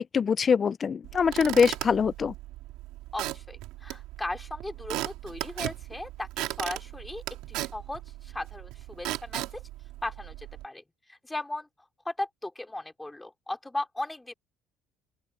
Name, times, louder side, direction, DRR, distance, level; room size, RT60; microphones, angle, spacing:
voice 1, 0.0-2.3, left 6 dB, 30° left, 0.5 m, -23 dB
Squeak / Wood, 1.0-10.6, right 17 dB, 75° right, 3.5 m, -37 dB
voice 2, 3.1-7.2 7.5-9.6 10.0-10.8 11.1-11.7 12.1-14.3, left 2 dB, 10° left, 3.8 m, -37 dB
open air
cardioid pair, 135°, 0 cm